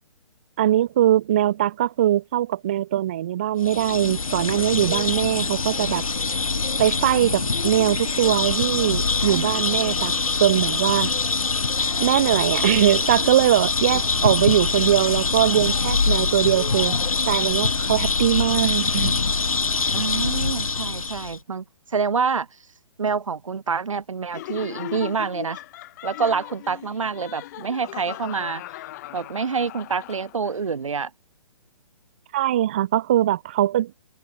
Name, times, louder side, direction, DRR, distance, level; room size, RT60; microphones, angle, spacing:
voice 1, 0.6-6.0 6.8-10.1 10.4-11.1 12.0-17.0 17.3-19.1 32.3-33.9, right 12 dB, 20° right, 0.3 m, -21 dB
sound 1, 3.6-21.4, left 4 dB, 75° left, 1.0 m, -24 dB
voice 2, 7.2-7.5 9.3-9.6 14.2-14.5 19.9-21.6 21.9-22.5 23.0-25.6 26.0-28.6 29.1-31.1, right 5 dB, 65° right, 1.0 m, -27 dB
Laughter, 24.3-30.6, left 16 dB, 30° left, 2.3 m, -38 dB
figure-of-eight pair, 135°, 18 cm